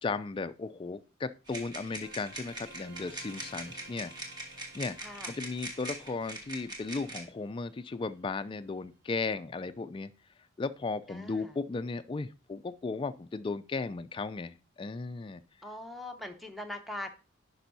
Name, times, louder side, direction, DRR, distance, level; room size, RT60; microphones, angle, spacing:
voice 1, 0.0-4.1 4.7-5.0 5.3-10.1 10.6-15.4, left 3 dB, 25° left, 0.3 m, -36 dB
sound 1, 1.5-7.2, right 2 dB, 20° right, 1.4 m, -42 dB
sound 2, 2.0-8.7, right 2 dB, 50° right, 0.6 m, -56 dB
voice 2, 5.0-5.3 11.1-11.5 15.6-17.1, left 1 dB, ahead, 0.7 m, -41 dB
10.0 x 5.4 x 2.7 m
head